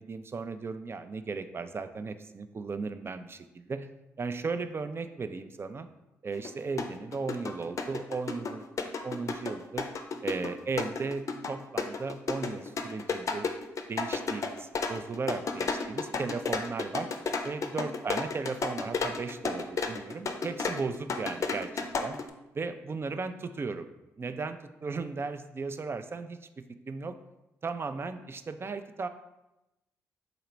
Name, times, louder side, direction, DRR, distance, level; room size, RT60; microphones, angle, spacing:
voice 1, 0.0-3.9 4.2-5.9 6.2-9.9 10.2-13.5 13.9-17.1 17.4-22.2 22.5-23.9 24.2-26.4 26.9-27.1 27.6-29.1, right 4 dB, 35° right, 10 dB, 0.4 m, -36 dB
sound 1, 6.4-6.5 6.8-22.3, left 4 dB, 50° left, 0.5 m, -32 dB
4.0 x 2.9 x 4.4 m, 0.94 s
supercardioid pair, 50°, 7 cm